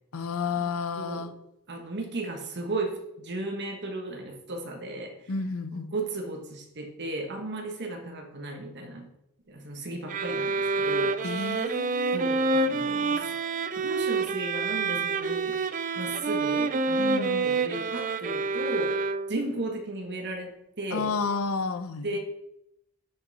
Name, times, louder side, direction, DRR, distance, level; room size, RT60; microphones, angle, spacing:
voice 1, 0.1-1.3 5.3-5.9 11.2-12.3 17.0-17.5 20.9-22.2, left 4 dB, 70° left, 11 dB, 0.7 m, -31 dB
voice 2, 0.9-1.3 1.7-5.3 5.7-9.1 9.5-11.2 12.1-13.4 13.7-19.0 19.3-21.1 22.0-22.2, right 2 dB, 55° right, 3 dB, 1.4 m, -35 dB
sound 1, 10.1-19.5, right 3 dB, 35° right, 0.4 m, -28 dB
13.0 x 5.7 x 4.2 m, 0.83 s
head